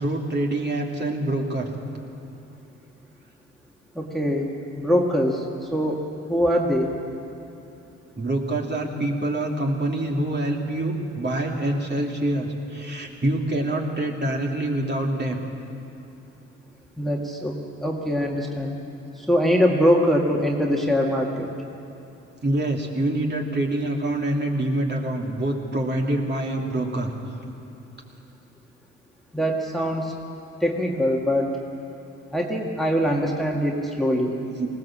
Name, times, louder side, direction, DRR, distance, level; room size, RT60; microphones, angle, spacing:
voice 1, 0.0-1.7 8.2-15.4 22.4-27.1 34.6-34.7, right 1 dB, 35° right, 0 dB, 2.8 m, -25 dB
voice 2, 4.0-4.5 4.8-6.0 6.3-6.9 17.0-17.5 17.8-18.7 19.2-21.5 29.3-30.1 30.6-31.5 32.3-34.3, equal, ahead, -1 dB, 2.0 m, -23 dB
20.0 x 18.0 x 7.5 m, 2.9 s
cardioid pair, 90°, 30 cm